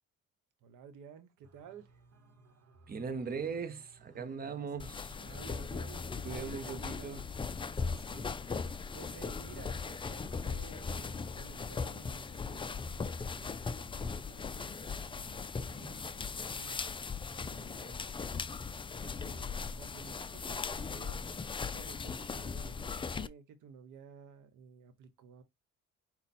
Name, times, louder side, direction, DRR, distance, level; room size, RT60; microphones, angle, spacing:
voice 1, 0.6-2.0 4.1-4.7 5.2-7.3 7.7-18.5 19.0-21.2 21.7-25.4, right 6 dB, 85° right, 1.1 m, -54 dB
sound 1, 1.4-17.1, right 2 dB, 55° right, 1.1 m, -62 dB
voice 2, 2.9-5.2 6.2-7.2, right 5 dB, 30° right, 0.8 m, -39 dB
sound 2, 4.8-23.3, left 5 dB, 20° left, 0.3 m, -39 dB
5.6 x 2.3 x 4.1 m
cardioid pair, 90°, 30 cm